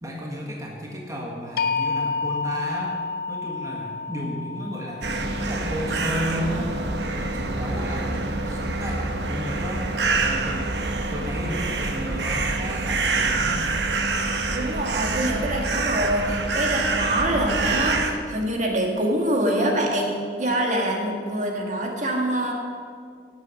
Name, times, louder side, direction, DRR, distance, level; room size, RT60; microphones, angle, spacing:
voice 1, 0.0-3.0 3.3-6.7 7.1-10.8 11.1-13.7, equal, 20° right, -2 dB, 1.6 m, -33 dB
sound 1, 1.6-7.5, left 4 dB, 60° left, 0.7 m, -30 dB
sound 2, 5.0-18.1, right 3 dB, 70° right, 1.1 m, -26 dB
voice 2, 14.5-22.5, right 1 dB, 45° right, 1 dB, 1.9 m, -25 dB
16.5 x 8.2 x 6.4 m, 2.2 s
head